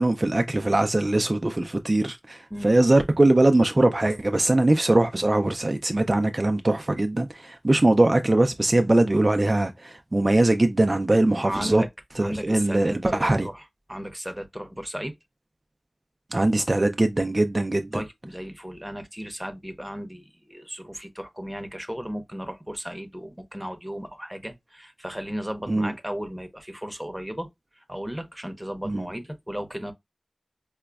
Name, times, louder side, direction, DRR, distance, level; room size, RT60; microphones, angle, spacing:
voice 1, 0.0-11.8 12.2-13.5 16.3-18.0 25.7-25.9 28.9-29.1, right 2 dB, 35° right, 0.3 m, -21 dB
voice 2, 11.4-11.9 12.2-13.6 13.9-15.1 17.9-27.5 27.8-29.9, equal, 5° right, 0.7 m, -35 dB
4.9 x 2.1 x 2.3 m
wide cardioid pair, 65°, 0 cm